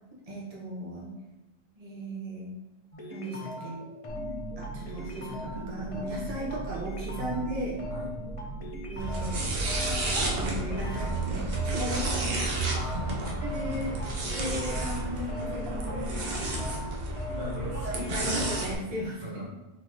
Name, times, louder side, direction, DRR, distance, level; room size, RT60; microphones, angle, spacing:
voice 1, 0.3-1.1 1.8-2.5 3.1-3.8 4.6-7.8 8.9-9.5 10.3-12.7 13.4-13.9 14.3-16.6 17.1-17.4 17.8-19.4, equal, 30° right, -5 dB, 1.1 m, -36 dB
sound 1, 2.9-18.5, left 2 dB, 35° left, 0.7 m, -40 dB
sound 2, 4.1-16.2, right 4 dB, 5° left, 1.2 m, -40 dB
sound 3, 9.0-18.7, right 2 dB, 55° right, 1.0 m, -31 dB
voice 2, 12.7-13.8 17.3-17.9 19.2-19.4, right 1 dB, 80° right, -5 dB, 1.8 m, -39 dB
4.2 x 3.9 x 3.1 m, 1.0 s
omnidirectional pair, 1.3 m